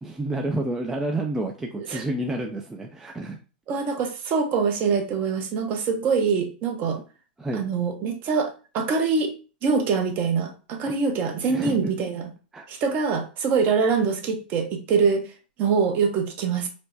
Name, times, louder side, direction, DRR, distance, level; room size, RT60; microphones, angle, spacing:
voice 1, 0.0-3.4 6.9-7.0 7.4-7.6 11.5-11.8 12.5-12.7, right 2 dB, 10° right, 2 dB, 0.3 m, -29 dB
voice 2, 3.7-7.0 7.5-9.3 9.6-12.3 12.7-15.3 15.6-16.7, right 5 dB, 35° right, 5 dB, 0.8 m, -24 dB
4.3 x 2.1 x 2.7 m, 0.34 s
hypercardioid pair, 130°, 5 cm